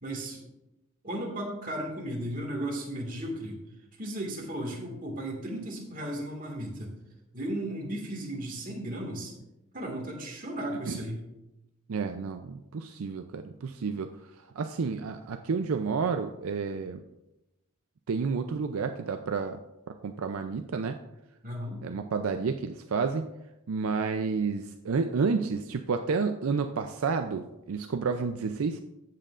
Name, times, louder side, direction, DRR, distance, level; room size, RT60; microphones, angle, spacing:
voice 1, 0.0-0.4 1.0-3.6 4.0-6.9 7.3-9.3 9.7-11.2 21.4-21.9, right 1 dB, 40° right, 0 dB, 1.9 m, -35 dB
voice 2, 11.9-14.1 14.4-17.0 18.1-19.6 20.0-21.0 21.8-23.3 23.7-28.8, right 5 dB, 75° right, 7 dB, 0.5 m, -30 dB
14.0 x 7.7 x 2.5 m, 0.94 s
head